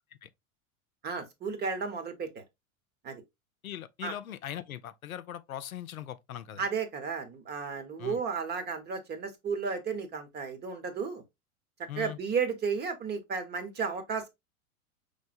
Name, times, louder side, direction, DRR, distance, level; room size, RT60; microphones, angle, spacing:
voice 1, 1.0-2.4 3.0-3.2 4.0-4.1 6.6-11.2 11.9-14.3, right 5 dB, 25° right, 1.0 m, -33 dB
voice 2, 3.6-6.6 8.0-8.2 11.9-12.2, left 11 dB, 80° left, 0.6 m, -40 dB
5.3 x 3.3 x 2.5 m
figure-of-eight pair, 90°, 42 cm